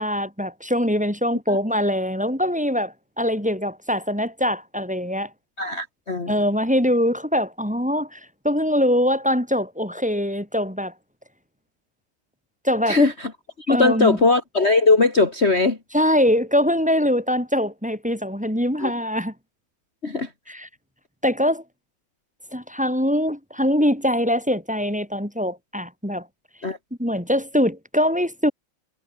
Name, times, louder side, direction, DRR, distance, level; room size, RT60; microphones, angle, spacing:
voice 1, 0.0-5.3 6.3-10.9 12.6-13.0 13.7-14.2 15.9-19.3 20.5-20.7 21.2-21.6 22.5-26.3 27.0-28.5, equal, 5° right, 4.8 m, -23 dB
voice 2, 5.6-6.3 12.9-13.3 13.7-15.8 18.8-18.9 20.0-20.3 26.6-26.8, left 3 dB, 30° left, 2.8 m, -19 dB
omnidirectional pair, 2.4 m